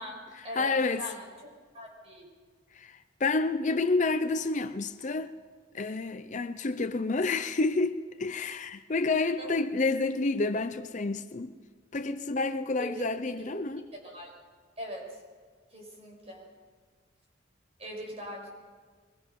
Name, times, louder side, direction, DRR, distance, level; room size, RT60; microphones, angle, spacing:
voice 1, 0.0-1.5 1.7-2.3 9.4-9.5 12.8-13.1 13.9-14.3 14.8-15.1 15.7-16.5 17.8-18.5, equal, 30° right, 5.6 m, -41 dB
voice 2, 0.5-1.1 2.7-5.3 5.7-11.5 11.9-13.8, left 3 dB, 40° left, 0.6 m, -29 dB
22.5 x 22.0 x 5.4 m
head